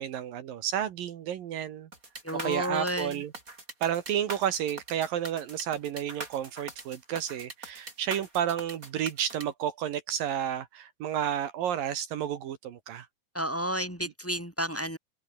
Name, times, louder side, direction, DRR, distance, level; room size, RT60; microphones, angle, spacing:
voice 1, 0.0-1.9 2.4-3.3 3.8-13.1, right 10 dB, 70° right, 3.2 m, -31 dB
sound 1, 1.9-9.4, right 2 dB, 20° right, 5.8 m, -42 dB
voice 2, 2.2-3.2 13.3-15.0, right 1 dB, 5° left, 5.4 m, -31 dB
omnidirectional pair, 4.2 m